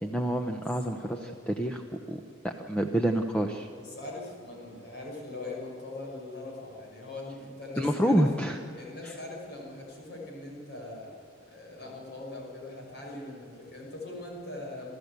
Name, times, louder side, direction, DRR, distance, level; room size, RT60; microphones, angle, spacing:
voice 1, 0.0-1.8 2.1-2.2 2.4-3.7 7.8-8.6 9.0-9.2, equal, 5° left, 4 dB, 0.8 m, -28 dB
voice 2, 1.0-1.4 3.7-8.3 8.7-11.1 11.5-14.9, left 2 dB, 55° left, -2 dB, 6.3 m, -41 dB
27.5 x 13.5 x 8.2 m, 2.3 s
head